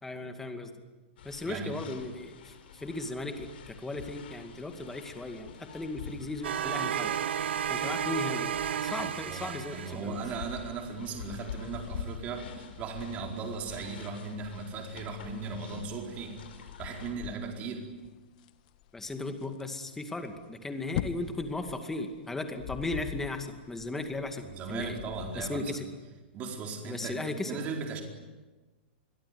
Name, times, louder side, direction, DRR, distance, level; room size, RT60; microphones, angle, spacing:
voice 1, 0.0-0.7 1.2-7.1 7.7-8.5 8.8-10.2 18.9-25.0 25.3-25.9 26.8-27.6, left 2 dB, 5° left, 6 dB, 2.3 m, -36 dB
sound 1, 1.2-17.1, left 7 dB, 70° left, 4.7 m, -47 dB
sound 2, 6.4-10.4, right 9 dB, 85° right, 1.0 m, -32 dB
sound 3, 7.6-25.6, left 11 dB, 45° left, 1.5 m, -46 dB
voice 2, 9.0-17.9 24.6-25.8 26.3-28.0, right 4 dB, 25° right, 2 dB, 4.5 m, -37 dB
26.5 x 23.0 x 9.5 m, 1.2 s
supercardioid pair, 160°, 6 cm